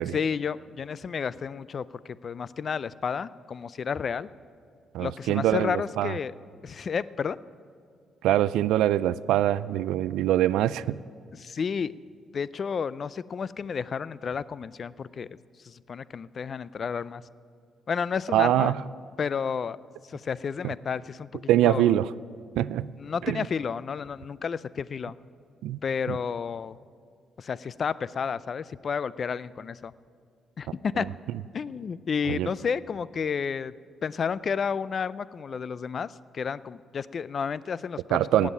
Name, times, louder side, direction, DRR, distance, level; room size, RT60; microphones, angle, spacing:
voice 1, 0.1-4.3 5.0-6.3 6.6-7.4 11.3-11.9 12.3-15.3 15.6-17.2 17.9-18.7 19.2-19.8 20.1-21.9 23.0-25.1 25.8-26.8 27.4-29.9 30.6-31.1 31.5-33.7 34.0-38.5, left 6 dB, 45° left, 18 dB, 0.4 m, -31 dB
voice 2, 4.9-6.1 8.2-11.0 18.3-18.8 20.6-20.7 21.5-22.1 22.6-22.9 23.2-23.5 25.6-25.8 26.1-26.2 32.3-32.5 38.1-38.5, right 13 dB, 90° right, 17 dB, 0.3 m, -24 dB
18.0 x 7.4 x 9.0 m, 2.2 s
cardioid pair, 90°, 0 cm